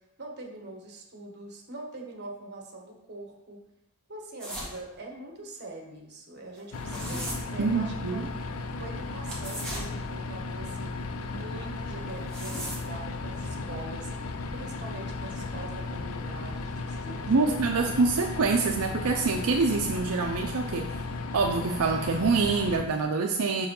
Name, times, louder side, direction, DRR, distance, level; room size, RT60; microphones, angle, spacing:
voice 1, 0.2-3.6 4.1-8.3 8.8-18.2, right 2 dB, 50° right, 1 dB, 1.4 m, -43 dB
sound 1, 4.4-4.8 6.6-7.4 9.2-9.9 12.1-12.9, right 1 dB, 5° left, 1.8 m, -36 dB
sound 2, 6.7-22.8, left 3 dB, 75° left, 0.6 m, -35 dB
voice 2, 7.6-8.2 17.3-21.0 21.3-23.7, right 4 dB, 80° right, 2 dB, 0.5 m, -26 dB
6.2 x 4.6 x 5.4 m, 0.88 s
head